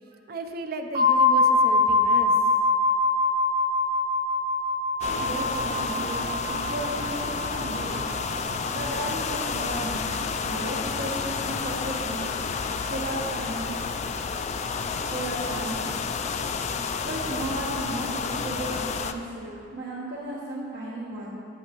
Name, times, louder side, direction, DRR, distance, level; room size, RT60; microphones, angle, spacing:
voice 1, 0.3-2.4, right 2 dB, 55° right, 5 dB, 0.5 m, -34 dB
sound 1, 0.9-10.6, left 3 dB, 30° right, 0.9 m, -25 dB
sound 2, 5.0-19.1, left 5 dB, 40° left, 0.3 m, -30 dB
voice 2, 5.1-8.0 8.7-12.2 12.8-13.8 15.0-15.9 17.0-21.4, right 1 dB, 70° right, -8 dB, 1.2 m, -34 dB
10.0 x 8.6 x 3.0 m, 2.6 s
head